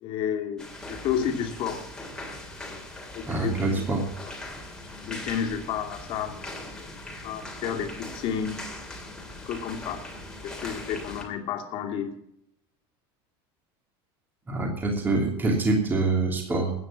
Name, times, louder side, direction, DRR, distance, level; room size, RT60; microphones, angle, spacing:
voice 1, 0.0-1.8 2.7-2.8 3.1-3.5 5.1-6.5 7.2-8.6 9.4-10.0 10.4-12.1, left 8 dB, 40° left, 3 dB, 2.6 m, -31 dB
sound 1, 0.6-11.2, left 1 dB, 5° left, 2.7 m, -40 dB
voice 2, 3.3-4.1 14.5-16.7, right 3 dB, 15° right, 1 dB, 3.0 m, -25 dB
14.5 x 9.5 x 7.4 m, 0.77 s
supercardioid pair, 160°, 13 cm